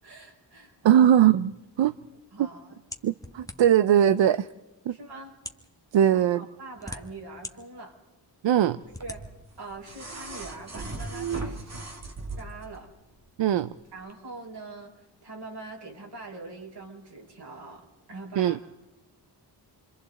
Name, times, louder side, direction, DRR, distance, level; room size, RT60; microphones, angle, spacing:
voice 1, 0.0-1.1 2.3-2.8 4.9-5.3 6.0-8.0 9.0-9.3 9.6-11.9 12.4-12.9 13.9-18.6, right 3 dB, 65° right, -1 dB, 5.6 m, -43 dB
voice 2, 0.8-1.9 2.4-2.5 3.0-4.5 4.9-5.0 5.9-6.5 8.4-8.8 13.4-13.7 18.4-18.6, right 10 dB, 90° right, 14 dB, 0.6 m, -20 dB
sound 1, 2.9-3.9 4.7-4.8 5.3-5.7 6.5-7.5 8.0-8.1 8.9-9.2, left 1 dB, 10° left, 1.4 m, -40 dB
sound 2, 9.0-12.8 14.0-14.1, right 4 dB, 35° right, 1.7 m, -37 dB
29.0 x 24.5 x 4.1 m, 1.1 s
wide cardioid pair, 110°, 43 cm